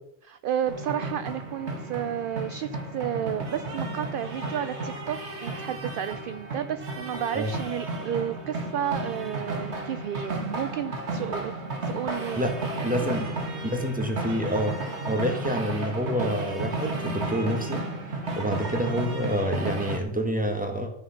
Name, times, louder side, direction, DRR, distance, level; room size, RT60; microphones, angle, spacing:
voice 1, 0.2-11.5 11.9-12.4 12.7-12.9 18.4-18.5, right 9 dB, 60° right, 12 dB, 0.6 m, -32 dB
sound 1, 0.7-20.0, right 2 dB, 75° right, 2.0 m, -33 dB
voice 2, 12.8-17.9 18.4-20.9, equal, 5° right, 4 dB, 1.6 m, -28 dB
13.0 x 6.7 x 5.8 m, 0.73 s
omnidirectional pair, 1.1 m